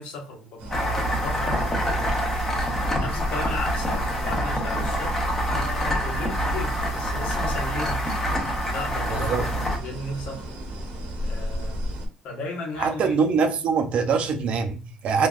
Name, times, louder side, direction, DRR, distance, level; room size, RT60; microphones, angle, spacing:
voice 1, 0.0-2.1 3.0-8.2 8.6-10.6 11.2-11.9 12.2-13.2, left 2 dB, 75° left, 1.0 m, -36 dB
Country site, 0.6-12.1, equal, 85° right, 0.9 m, -34 dB
sound 1, 0.7-9.8, equal, 15° left, 0.7 m, -26 dB
voice 2, 9.1-9.4 12.8-15.3, right 5 dB, 55° right, 0.5 m, -23 dB
3.3 x 2.3 x 2.4 m
cardioid pair, 125°, 2 cm